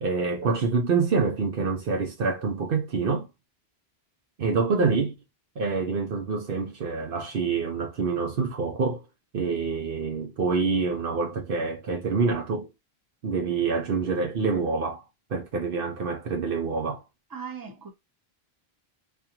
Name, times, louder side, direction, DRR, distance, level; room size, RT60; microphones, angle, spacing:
voice 1, 0.0-3.3 4.4-5.1 5.6-9.0 9.3-12.7 13.2-15.0 15.3-17.0, right 4 dB, 60° right, 0.9 m, -26 dB
voice 2, 17.3-17.9, right 6 dB, 20° right, 0.8 m, -38 dB
3.7 x 2.6 x 2.9 m
omnidirectional pair, 1.1 m